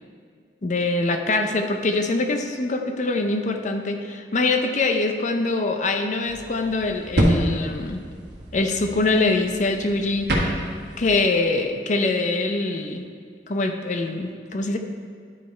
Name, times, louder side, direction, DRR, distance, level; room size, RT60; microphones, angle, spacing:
voice 1, 0.6-8.0 8.5-10.6 11.0-13.1 13.5-14.8, left 3 dB, 45° left, 5 dB, 0.6 m, -24 dB
sound 1, 6.3-11.2, equal, 75° right, 1.5 m, -27 dB
10.5 x 5.3 x 4.4 m, 2.2 s
head